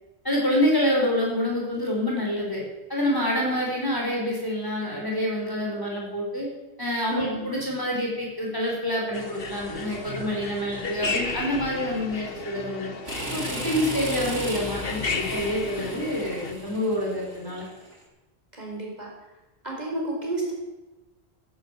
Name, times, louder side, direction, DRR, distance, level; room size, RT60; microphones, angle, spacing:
voice 1, 0.2-2.6 2.9-6.5 6.8-12.9 13.3-17.6, left 1 dB, 20° left, -3 dB, 4.5 m, -27 dB
voice 2, 7.1-7.5 18.5-19.1 19.6-20.5, right 2 dB, 40° right, -2 dB, 4.6 m, -31 dB
sound 1, 9.1-16.5, left 4 dB, 60° left, 1.5 m, -34 dB
sound 2, 13.1-17.9, equal, 65° right, 7.0 m, -35 dB
14.0 x 11.0 x 8.3 m, 1.0 s
omnidirectional pair, 1.1 m